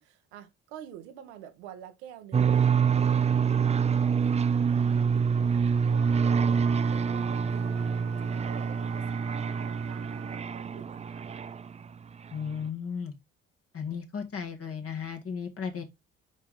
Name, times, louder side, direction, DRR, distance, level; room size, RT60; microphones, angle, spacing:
voice 1, 0.0-11.3, right 10 dB, 85° right, 1.0 m, -48 dB
sound 1, 2.3-11.9, right 6 dB, 20° right, 0.4 m, -26 dB
Wind instrument woodwind instrument, 5.9-10.5, right 4 dB, 50° right, 1.1 m, -45 dB
voice 2, 12.3-13.1 13.7-15.8, left 6 dB, 45° left, 1.9 m, -35 dB
5.3 x 5.0 x 3.6 m
hypercardioid pair, 50°, 33 cm